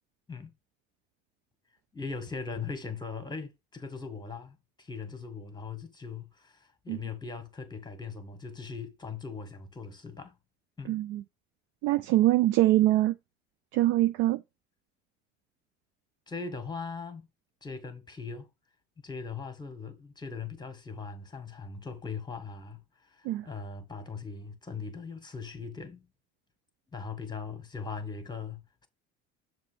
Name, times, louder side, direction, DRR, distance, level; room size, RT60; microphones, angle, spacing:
voice 1, 1.9-10.3 10.8-11.0 16.3-17.3 17.6-18.5 19.0-26.1 26.9-28.9, left 5 dB, 10° left, 1.6 m, -40 dB
voice 2, 10.9-11.2 11.8-13.1 13.7-14.4 23.3-23.5, right 16 dB, 65° right, 0.5 m, -23 dB
6.7 x 3.2 x 5.0 m
hypercardioid pair, 70°, 35 cm